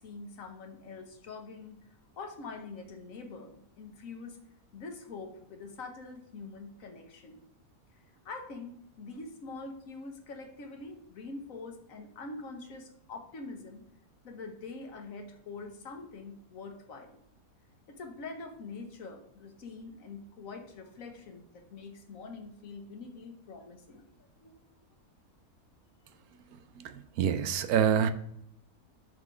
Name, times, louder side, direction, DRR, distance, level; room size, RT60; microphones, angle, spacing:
voice 1, 0.0-1.8 2.2-4.4 4.7-7.4 8.2-13.8 14.2-17.2 17.9-24.1 24.4-24.6, left 3 dB, 70° left, 4 dB, 1.3 m, -44 dB
voice 2, 26.8-28.1, right 8 dB, 85° right, 10 dB, 1.1 m, -27 dB
6.2 x 3.9 x 5.0 m, 0.76 s
omnidirectional pair, 1.5 m